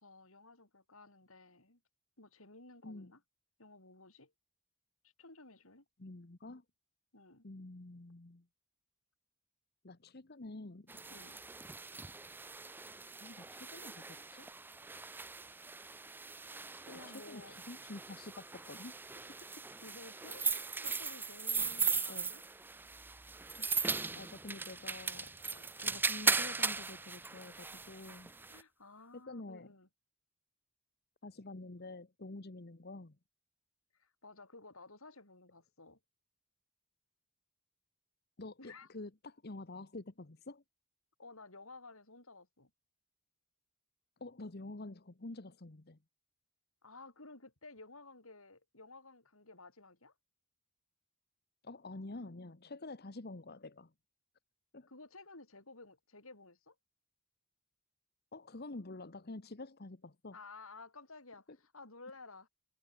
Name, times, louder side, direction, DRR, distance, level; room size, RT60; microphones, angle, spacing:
voice 1, 0.0-1.8 2.2-3.2 3.6-4.3 5.0-5.9 7.1-7.5 11.1-11.4 16.9-17.6 19.8-20.5 20.8-22.4 25.4-25.7 28.5-29.9 33.9-36.0 38.6-38.9 41.2-42.7 46.8-50.1 54.9-56.8 60.3-62.5, left 3 dB, 70° left, 5.7 m, -54 dB
voice 2, 6.0-6.6 7.4-8.5 9.8-11.0 13.2-14.5 17.1-19.0 22.1-22.3 23.5-25.3 25.8-28.3 29.1-29.7 31.2-33.2 38.4-40.6 44.2-46.0 51.6-53.9 54.7-54.9 58.3-60.4, left 2 dB, 45° left, 1.2 m, -48 dB
sound 1, 10.9-28.6, right 4 dB, 10° right, 0.4 m, -38 dB
head